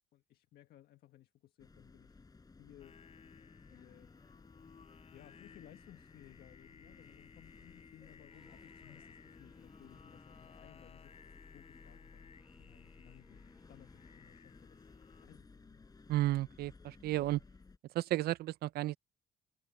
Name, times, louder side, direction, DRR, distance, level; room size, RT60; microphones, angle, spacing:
voice 1, 0.1-2.2 2.6-3.0 3.7-4.1 5.1-14.9 15.2-15.9, left 13 dB, 65° left, 1.5 m, -60 dB
sound 1, 1.6-17.8, left 4 dB, 20° left, 6.4 m, -58 dB
Singing, 2.8-15.3, left 6 dB, 40° left, 5.8 m, -60 dB
sound 2, 8.2-14.4, equal, ahead, 6.9 m, -71 dB
voice 2, 16.1-17.4 17.9-19.0, right 16 dB, 65° right, 0.6 m, -33 dB
cardioid pair, 110°, 17 cm